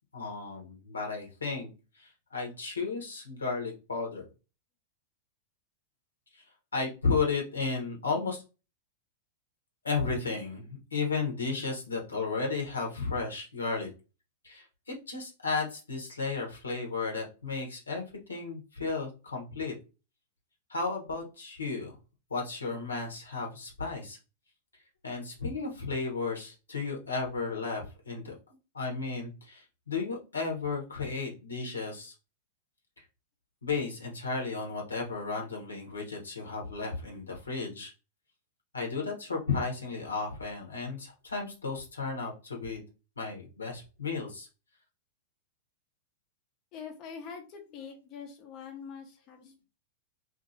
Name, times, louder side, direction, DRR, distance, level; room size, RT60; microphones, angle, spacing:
voice 1, 0.1-1.7 2.0-4.3 6.3-6.4 6.7-8.4 9.8-13.9 14.4-18.0 18.3-19.7 20.7-21.9 22.3-24.2 25.0-28.3 28.7-32.1 33.0-33.1 33.6-37.9 38.7-42.8 43.2-44.5 49.4-49.5, left 4 dB, 90° left, 0 dB, 1.0 m, -34 dB
voice 2, 46.7-49.6, left 6 dB, 40° left, 2 dB, 0.6 m, -44 dB
2.7 x 2.6 x 2.6 m, 0.32 s
hypercardioid pair, 105°, 0 cm